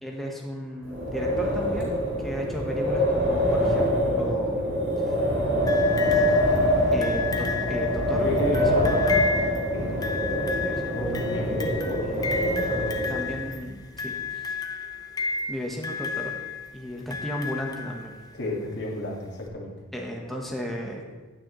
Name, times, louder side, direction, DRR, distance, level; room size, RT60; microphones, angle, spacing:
voice 1, 0.0-5.2 6.8-9.2 9.8-11.3 11.7-11.8 12.0-12.3 13.1-14.6 15.5-16.3 16.7-18.1 19.9-21.0, equal, ahead, -1 dB, 1.0 m, -35 dB
Wind, 0.8-13.5, equal, 60° right, 3.1 m, -25 dB
sound 1, 5.7-18.5 19.5-19.6, left 4 dB, 20° left, 0.5 m, -33 dB
voice 2, 8.1-9.0 9.7-9.9 10.9-13.1 18.3-19.7, left 1 dB, 55° left, -1 dB, 1.7 m, -31 dB
9.3 x 8.8 x 3.0 m, 1.3 s
head